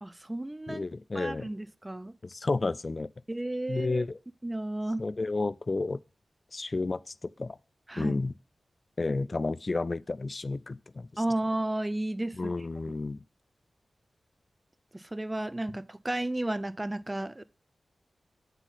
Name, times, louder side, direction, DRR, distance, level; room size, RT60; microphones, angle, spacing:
voice 1, 0.0-0.8 1.1-2.2 3.3-4.0 4.4-5.1 7.9-8.2 11.2-12.5 14.9-17.4, right 1 dB, 25° right, 0.5 m, -33 dB
voice 2, 0.7-1.5 2.2-3.1 3.7-4.2 5.0-6.0 6.5-7.6 8.0-8.3 9.0-11.2 12.3-13.2, left 3 dB, 45° left, 0.3 m, -31 dB
8.1 x 4.0 x 4.0 m
cardioid pair, 45°, 0 cm